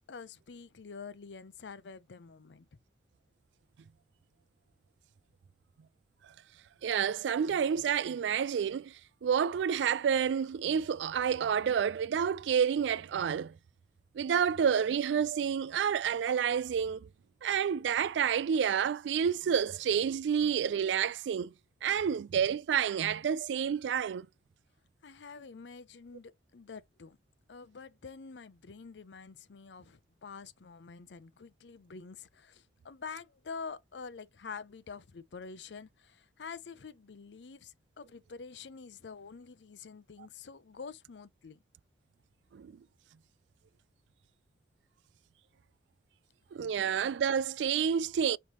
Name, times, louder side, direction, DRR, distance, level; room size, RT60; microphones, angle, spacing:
voice 1, 0.1-2.8 25.0-27.2 27.5-41.6 46.8-47.0, left 5 dB, 80° left, 0.6 m, -47 dB
voice 2, 6.8-8.9 9.2-13.5 14.1-17.1 17.4-21.5 21.8-24.3 42.5-42.7 46.5-48.4, right 7 dB, 85° right, 0.3 m, -29 dB
5.4 x 3.2 x 3.0 m
head